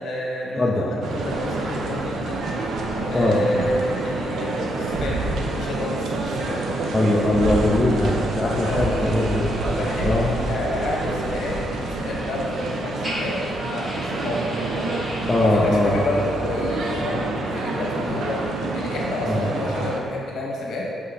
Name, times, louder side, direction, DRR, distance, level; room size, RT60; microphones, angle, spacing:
voice 1, 0.0-2.4 3.1-6.6 8.7-8.9 9.3-13.4 13.6-14.5 15.4-18.4 18.7-20.9, left 1 dB, 55° left, -2 dB, 1.4 m, -29 dB
voice 2, 0.6-0.9 3.1-3.4 6.9-9.5 10.0-10.3 15.3-16.0 19.2-19.4, left 1 dB, 15° left, -3 dB, 0.5 m, -21 dB
sound 1, 1.0-20.0, right 2 dB, 60° right, 0.7 m, -27 dB
sound 2, 8.9-15.5, equal, 20° right, 1.1 m, -37 dB
6.3 x 5.4 x 4.0 m, 2.4 s
cardioid pair, 170°, 0 cm